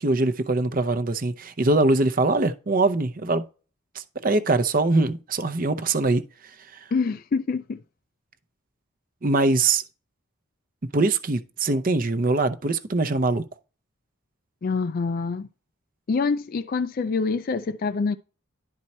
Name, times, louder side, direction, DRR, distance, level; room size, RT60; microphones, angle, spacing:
voice 1, 0.0-3.4 3.9-6.2 6.7-6.8 9.2-9.8 10.9-13.4, right 2 dB, 40° right, 0.6 m, -22 dB
voice 2, 6.9-7.8 14.6-15.5 16.1-18.2, left 4 dB, 45° left, 0.3 m, -26 dB
11.0 x 4.6 x 4.2 m
head